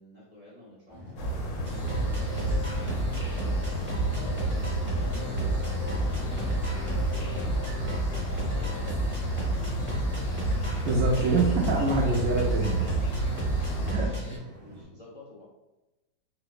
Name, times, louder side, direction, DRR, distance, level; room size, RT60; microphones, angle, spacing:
voice 1, 0.0-1.5 1.9-3.7 4.1-7.6 8.5-10.4 14.0-15.4, left 2 dB, 60° left, -7 dB, 0.4 m, -49 dB
sound 1, 0.9-14.8, equal, 55° right, 1.7 m, -50 dB
sound 2, 1.2-13.9, right 1 dB, 80° left, 1.3 m, -31 dB
sound 3, 1.6-14.4, right 1 dB, 20° right, 0.3 m, -32 dB
voice 2, 10.8-12.9 13.9-14.1, right 3 dB, 85° right, -2 dB, 0.7 m, -25 dB
4.6 x 2.1 x 2.4 m, 1.0 s
omnidirectional pair, 2.0 m